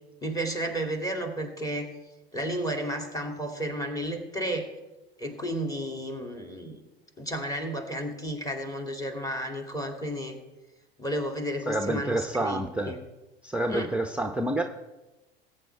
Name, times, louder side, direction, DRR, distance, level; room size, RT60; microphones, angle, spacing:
voice 1, 0.2-1.9 2.3-4.7 5.2-6.8 7.2-10.4 11.0-13.0 13.7-13.9, equal, 10° left, 3 dB, 2.4 m, -32 dB
voice 2, 11.7-13.0 13.4-14.6, right 1 dB, 5° right, 5 dB, 0.7 m, -28 dB
20.0 x 9.2 x 3.3 m, 1.1 s
figure-of-eight pair, 75°, 30 cm